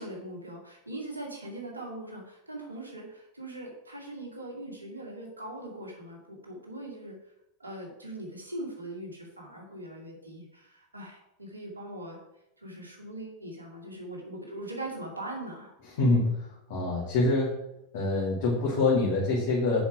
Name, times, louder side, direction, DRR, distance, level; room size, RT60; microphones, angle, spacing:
voice 1, 0.0-7.2 7.6-12.2 12.6-15.7, right 1 dB, 80° right, -1 dB, 2.3 m, -41 dB
voice 2, 16.0-17.6 17.9-19.8, left 2 dB, 50° left, -6 dB, 2.8 m, -25 dB
7.0 x 5.7 x 6.2 m, 0.84 s
figure-of-eight pair, 85°, 0 cm